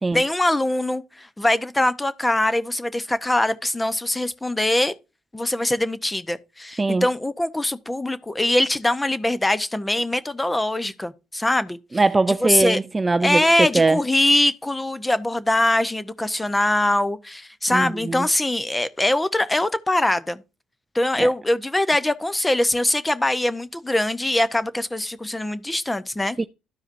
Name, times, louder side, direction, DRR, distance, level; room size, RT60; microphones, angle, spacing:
voice 1, 0.1-4.9 5.3-11.8 12.3-12.8 13.2-20.4 20.9-26.4, left 1 dB, 10° left, 0.8 m, -22 dB
voice 2, 11.9-14.0 17.7-18.3 21.2-21.3 26.4-26.5, right 3 dB, 20° right, 0.4 m, -21 dB
13.0 x 4.8 x 2.6 m
cardioid pair, 80°, 0 cm